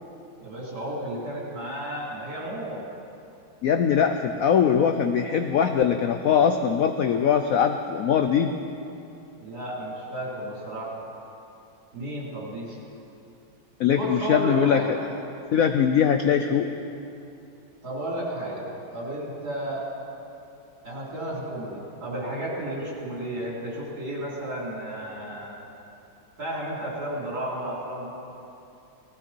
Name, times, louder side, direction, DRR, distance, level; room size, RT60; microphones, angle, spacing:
voice 1, 0.4-2.8 9.4-11.0 11.9-12.8 13.9-14.9 17.8-18.7 18.9-19.9 20.8-25.6 26.4-28.1, right 1 dB, 50° right, -6 dB, 4.7 m, -32 dB
voice 2, 3.6-8.5 13.8-14.8 15.5-16.7, left 8 dB, 70° left, 7 dB, 0.8 m, -21 dB
18.5 x 16.0 x 4.5 m, 2.7 s
omnidirectional pair, 2.1 m